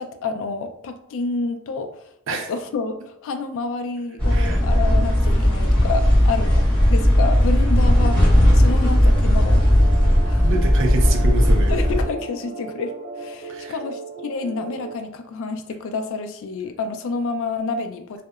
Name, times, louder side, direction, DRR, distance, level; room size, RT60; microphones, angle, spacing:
voice 1, 0.0-9.6 10.3-10.5 11.7-18.2, left 4 dB, 65° left, 7 dB, 0.3 m, -29 dB
sound 1, 4.2-12.0, equal, 10° left, 0.8 m, -16 dB
sound 2, 9.4-14.9, right 3 dB, 45° right, 1.1 m, -37 dB
voice 2, 10.4-11.7 13.5-13.8, right 2 dB, 60° right, 3 dB, 0.5 m, -26 dB
2.7 x 2.1 x 2.3 m, 0.76 s
head